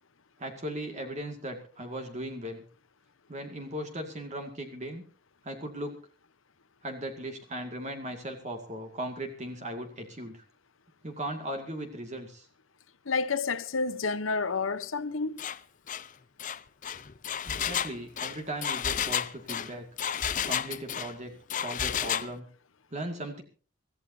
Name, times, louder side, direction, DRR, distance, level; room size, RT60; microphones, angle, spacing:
voice 1, 0.4-2.6 3.3-5.0 5.4-6.0 6.8-10.4 11.0-12.5 17.4-19.9 20.5-22.4 22.9-23.4, right 1 dB, 35° right, 2.2 m, -38 dB
voice 2, 13.0-15.4, left 4 dB, 75° left, 1.0 m, -29 dB
Engine, 15.4-15.6 15.9-16.1 16.4-21.1 21.5-22.3, left 8 dB, 40° left, 0.6 m, -31 dB
25.0 x 15.0 x 2.8 m
head